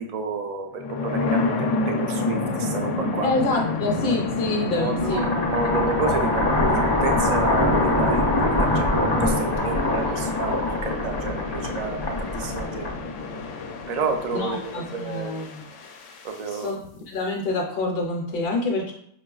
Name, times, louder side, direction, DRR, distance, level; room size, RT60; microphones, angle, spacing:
voice 1, 0.0-3.3 4.8-8.9 9.2-10.5 10.8-12.9 13.9-15.4 16.2-16.7, right 4 dB, 70° right, 4 dB, 0.4 m, -30 dB
sound 1, 0.7-16.7, left 3 dB, 90° left, 0.9 m, -29 dB
voice 2, 3.2-5.3 10.0-10.2 14.3-15.6 16.5-18.9, left 2 dB, 60° left, 0 dB, 0.8 m, -27 dB
sound 2, 5.0-13.2, left 1 dB, 35° left, 0.4 m, -24 dB
5.2 x 2.4 x 2.3 m, 0.69 s
omnidirectional pair, 1.2 m